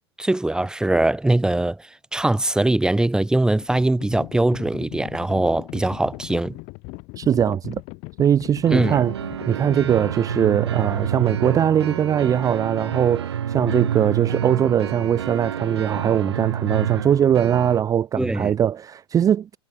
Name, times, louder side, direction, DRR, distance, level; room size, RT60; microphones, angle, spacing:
voice 1, 0.2-6.6 8.7-9.0 18.2-18.5, right 2 dB, 5° right, 1.0 m, -21 dB
Livestock farm animals working animals, 2.8-11.9, left 29 dB, 50° left, 2.5 m, -40 dB
voice 2, 7.2-7.8 8.2-9.1 9.5-19.6, right 9 dB, 25° right, 0.7 m, -21 dB
sound 1, 8.6-17.8, right 9 dB, 75° right, 1.1 m, -28 dB
figure-of-eight pair, 85°, 14 cm